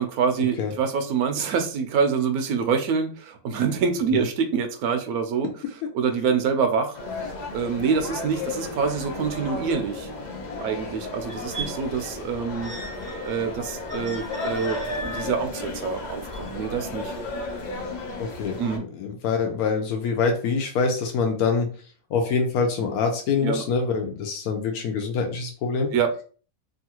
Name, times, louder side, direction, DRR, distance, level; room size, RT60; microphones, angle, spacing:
voice 1, 0.0-5.5 5.9-10.1 10.6-12.7 13.2-17.1 17.5-17.6 18.6-18.8 23.4-23.6 25.9-26.2, right 6 dB, 90° right, 6 dB, 1.1 m, -26 dB
sound 1, 6.9-18.8, left 2 dB, 60° left, 0.4 m, -34 dB
sound 2, 11.3-17.4 18.1-18.2, right 1 dB, 20° right, 0.6 m, -39 dB
voice 2, 18.2-21.7 22.1-25.9, left 5 dB, 90° left, 3 dB, 1.1 m, -25 dB
3.1 x 2.4 x 2.9 m, 0.40 s
omnidirectional pair, 1.5 m